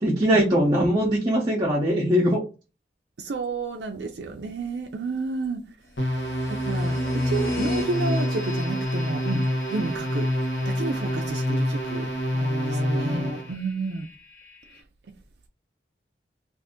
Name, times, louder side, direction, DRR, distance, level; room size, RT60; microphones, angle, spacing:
voice 1, 0.0-2.4 12.3-13.4, equal, 25° right, 0.7 m, -22 dB
voice 2, 3.2-5.6 6.5-7.0 7.2-9.4 9.7-10.3 10.7-12.1 12.7-14.1, right 3 dB, 75° right, 0.4 m, -31 dB
sound 1, 6.0-13.5, equal, 85° left, 0.9 m, -27 dB
sound 2, 6.0-14.8, left 2 dB, 60° left, 1.0 m, -37 dB
2.6 x 2.5 x 3.5 m
head